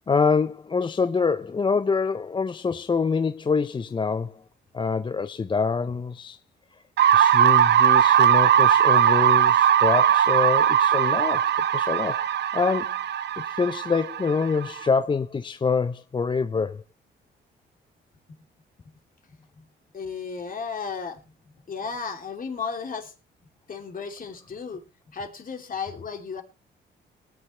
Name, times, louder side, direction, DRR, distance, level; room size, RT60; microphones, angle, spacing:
voice 1, 0.1-4.4 4.7-6.4 7.1-12.2 12.5-13.0 13.4-16.8, left 5 dB, 25° left, 0.5 m, -25 dB
sound 1, 7.0-14.8, right 9 dB, 60° right, 0.8 m, -19 dB
voice 2, 19.9-21.2 21.7-23.1 23.7-24.8 25.1-26.4, left 5 dB, 45° left, 3.0 m, -34 dB
19.0 x 9.8 x 3.3 m
cardioid pair, 90°, 20 cm